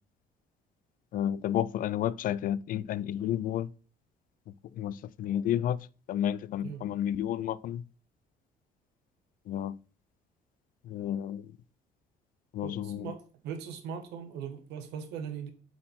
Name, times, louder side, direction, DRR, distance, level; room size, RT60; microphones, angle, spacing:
voice 1, 1.1-3.7 4.7-7.8 9.5-9.8 10.8-11.5 12.5-13.1, left 10 dB, 55° left, 0.4 m, -31 dB
voice 2, 12.6-15.5, right 7 dB, 90° right, 1.3 m, -40 dB
7.4 x 4.2 x 4.5 m
cardioid pair, 110°, 17 cm